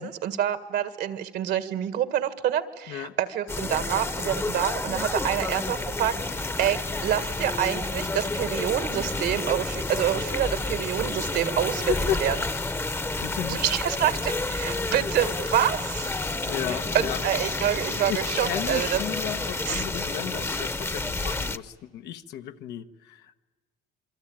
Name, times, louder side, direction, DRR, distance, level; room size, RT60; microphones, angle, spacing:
voice 1, 0.0-11.9 12.2-12.4 13.5-16.1 16.9-19.0 19.7-19.8, right 10 dB, 75° right, 12 dB, 1.8 m, -27 dB
sound 1, 3.5-21.6, left 2 dB, 15° left, 0.9 m, -30 dB
voice 2, 11.9-12.2 13.2-13.7 16.5-17.2 18.1-23.3, left 11 dB, 85° left, 8 dB, 1.2 m, -33 dB
27.5 x 23.5 x 8.9 m, 1.3 s
cardioid pair, 110°, 17 cm